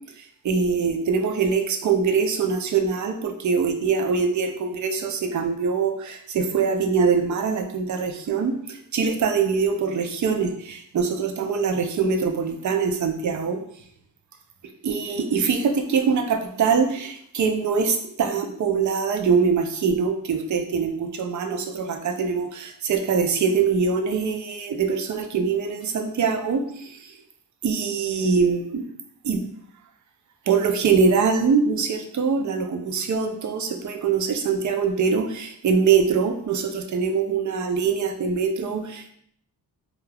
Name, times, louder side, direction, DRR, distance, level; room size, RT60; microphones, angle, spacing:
voice 1, 0.4-8.5 8.9-13.6 14.8-26.6 27.6-28.8 29.2-29.4 30.5-39.1, right 5 dB, 50° right, 5 dB, 0.4 m, -23 dB
2.3 x 2.3 x 3.2 m, 0.67 s
wide cardioid pair, 100°, 40 cm